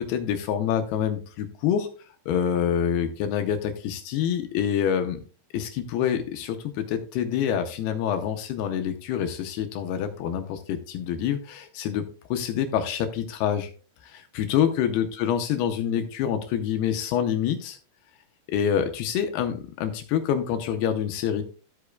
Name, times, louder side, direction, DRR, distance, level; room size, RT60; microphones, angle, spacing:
voice 1, 0.0-5.2 5.5-13.7 14.0-17.8 18.5-21.4, left 9 dB, 80° left, 6 dB, 2.6 m, -26 dB
13.0 x 8.1 x 2.3 m, 0.37 s
omnidirectional pair, 4.8 m